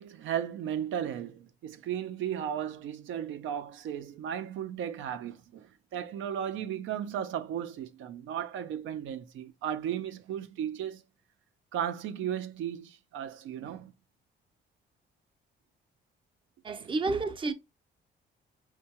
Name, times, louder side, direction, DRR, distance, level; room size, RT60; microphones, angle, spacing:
voice 1, 0.0-11.0 11.7-13.9 16.8-16.9, right 9 dB, 75° right, 0.4 m, -35 dB
voice 2, 16.6-17.5, right 3 dB, 25° right, 0.5 m, -30 dB
4.5 x 2.2 x 2.8 m
cardioid pair, 90°, 20 cm